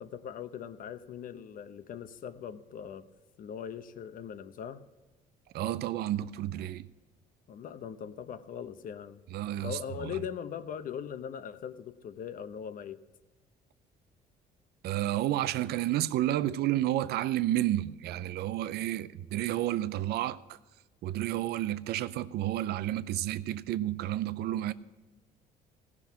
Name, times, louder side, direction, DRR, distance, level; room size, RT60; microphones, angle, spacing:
voice 1, 0.0-3.1 3.4-4.8 7.5-9.2 9.6-13.0, left 8 dB, 55° left, 0.8 m, -40 dB
voice 2, 5.5-6.9 9.3-10.2 14.8-20.6 21.0-24.7, right 13 dB, 70° right, 0.5 m, -31 dB
16.5 x 6.1 x 7.2 m
cardioid pair, 110°, 17 cm